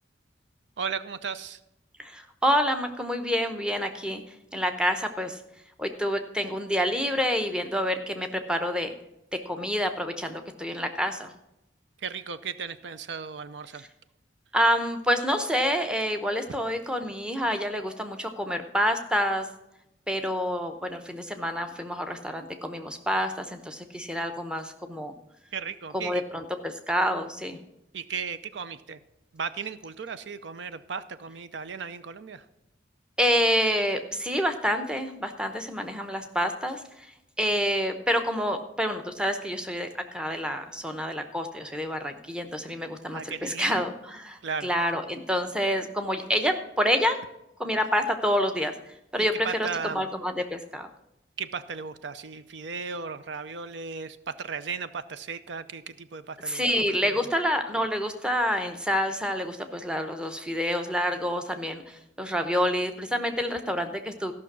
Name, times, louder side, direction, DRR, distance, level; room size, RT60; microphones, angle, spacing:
voice 1, 0.8-1.6 12.0-13.9 25.5-26.2 27.9-29.0 29.3-32.5 43.1-43.8 44.4-44.7 49.2-50.1 51.4-57.3, right 5 dB, 75° right, 13 dB, 0.5 m, -36 dB
voice 2, 2.0-4.2 4.5-5.4 5.8-8.9 9.3-11.3 14.5-19.5 20.1-25.1 25.9-27.6 33.2-37.1 37.4-47.2 47.6-50.9 56.5-64.3, equal, 5° right, 6 dB, 0.8 m, -28 dB
14.0 x 6.0 x 6.1 m, 0.86 s
head